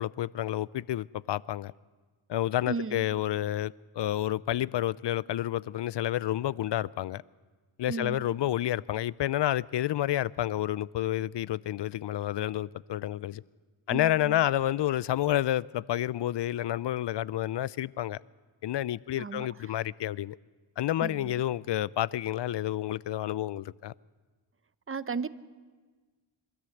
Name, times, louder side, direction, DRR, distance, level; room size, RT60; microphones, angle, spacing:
voice 1, 0.0-1.7 2.3-7.2 7.8-13.4 13.9-18.2 18.6-20.4 20.8-23.9, left 13 dB, 60° left, 0.5 m, -29 dB
voice 2, 2.7-3.0 7.9-8.3 13.9-14.4 19.2-19.5 21.0-21.3 24.9-25.3, right 4 dB, 25° right, 0.8 m, -35 dB
24.5 x 13.5 x 7.8 m
cardioid pair, 55°, 50 cm